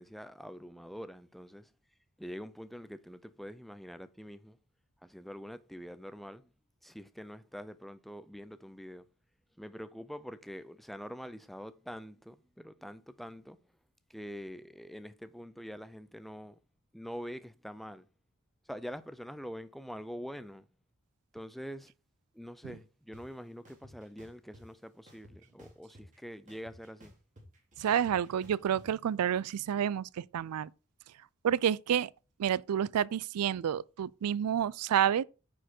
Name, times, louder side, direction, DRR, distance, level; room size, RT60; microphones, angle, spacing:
voice 1, 0.0-1.7 2.2-4.6 5.0-6.5 6.8-9.1 9.6-13.6 14.1-16.6 16.9-18.1 18.7-20.7 21.3-21.9 22.3-27.1, equal, ahead, 0.4 m, -45 dB
sound 1, 23.1-23.2 23.6-24.6 25.1-26.2 26.5-28.9, equal, 35° right, 2.5 m, -55 dB
voice 2, 27.8-30.7 31.4-32.1 32.4-35.2, right 9 dB, 90° right, 0.4 m, -29 dB
9.2 x 4.5 x 4.4 m
head